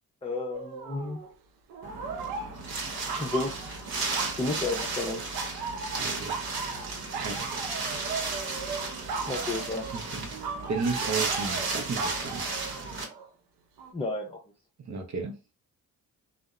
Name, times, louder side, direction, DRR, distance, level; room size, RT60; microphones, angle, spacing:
voice 1, 0.2-1.2 2.9-3.8 4.4-5.4 9.3-9.9 13.9-14.4, left 2 dB, 15° left, 0 dB, 0.5 m, -32 dB
sound 1, 0.5-1.3 1.7-4.4 4.7-5.1 5.3-13.3 13.8-13.9, right 5 dB, 90° right, 0.5 m, -38 dB
Wind, 1.8-13.0, right 3 dB, 70° right, 0.9 m, -34 dB
voice 2, 6.0-6.5 7.2-7.9 9.9-10.2 10.7-12.4 14.9-15.3, right 4 dB, 45° right, 3 dB, 0.6 m, -34 dB
2.7 x 2.0 x 2.3 m, 0.30 s
supercardioid pair, 50°, 39 cm